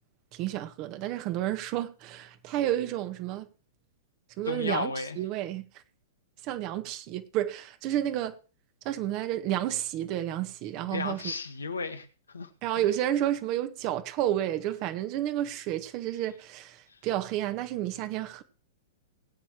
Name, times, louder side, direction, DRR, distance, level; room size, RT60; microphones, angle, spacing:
voice 1, 0.3-3.5 4.4-5.6 6.4-8.4 8.9-11.3 12.6-18.4, right 12 dB, 40° right, 1.7 m, -31 dB
voice 2, 4.5-5.2 10.8-12.5 16.9-17.0, left 4 dB, 85° left, 1.8 m, -34 dB
20.0 x 9.3 x 3.2 m
hypercardioid pair, 110°, 0 cm